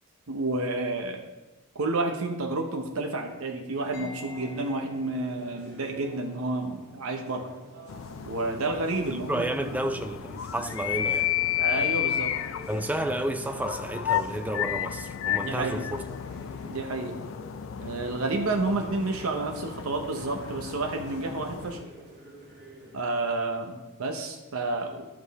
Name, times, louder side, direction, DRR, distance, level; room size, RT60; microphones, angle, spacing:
voice 1, 0.3-1.2 1.7-7.5 8.3-9.9 11.6-12.4 15.4-15.9 16.7-17.2 17.8-21.9 22.9-25.1, right 2 dB, 85° right, 0.8 m, -30 dB
sound 1, 3.7-23.0, right 1 dB, 50° right, 2.7 m, -49 dB
Mallet percussion, 3.9-11.5, left 1 dB, 40° left, 1.8 m, -52 dB
sound 2, 7.9-21.8, left 10 dB, 65° left, 0.4 m, -33 dB
voice 2, 9.1-11.3 12.7-16.0, right 1 dB, 5° right, 0.4 m, -31 dB
11.5 x 6.1 x 4.1 m
head